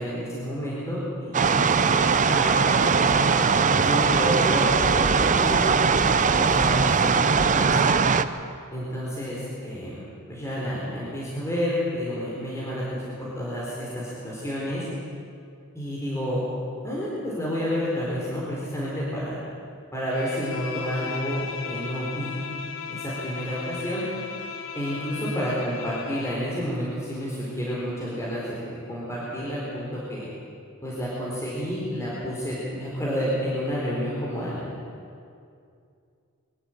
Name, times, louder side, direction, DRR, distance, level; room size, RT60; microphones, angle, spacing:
voice 1, 0.0-4.6 4.9-7.9 8.7-10.0 10.3-14.8 15.7-16.4 16.8-19.4 19.9-22.4 22.9-24.0 24.7-30.3 30.8-34.7, equal, 15° left, -7 dB, 4.2 m, -30 dB
sound 1, 1.3-8.2, right 5 dB, 35° right, 0.7 m, -20 dB
Bowed string instrument, 20.1-26.5, left 6 dB, 60° left, 1.9 m, -36 dB
23.5 x 12.5 x 9.0 m, 2.4 s
head